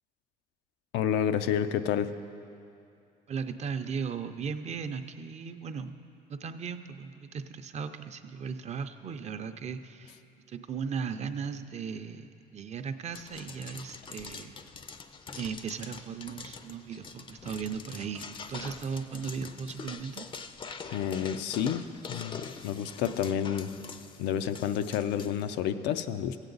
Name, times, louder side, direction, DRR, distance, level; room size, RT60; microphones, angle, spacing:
voice 1, 0.9-2.1 20.9-23.7 24.2-26.4, left 9 dB, 90° left, 10 dB, 0.5 m, -30 dB
voice 2, 3.3-5.9 6.3-10.2 10.5-14.6 15.3-20.3, right 6 dB, 40° right, 9 dB, 0.5 m, -37 dB
sound 1, 13.1-25.6, left 5 dB, 30° left, 0.4 m, -44 dB
15.5 x 8.1 x 3.9 m, 2.7 s
cardioid pair, 110°, 17 cm